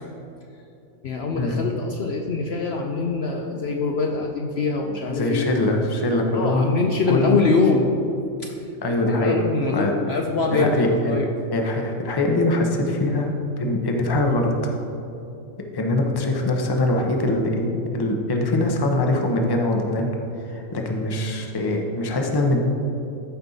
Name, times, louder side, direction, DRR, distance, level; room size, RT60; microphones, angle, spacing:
voice 1, 1.0-5.4 6.3-7.9 8.4-8.7 9.1-11.3, left 4 dB, 60° left, 2 dB, 0.8 m, -24 dB
voice 2, 5.1-6.7 7.1-7.4 8.8-9.4 9.7-10.2 10.5-11.2 11.5-14.5 15.7-20.1 20.4-22.6, left 2 dB, 20° left, 2 dB, 0.7 m, -23 dB
14.0 x 5.3 x 4.1 m, 2.8 s
omnidirectional pair, 1.4 m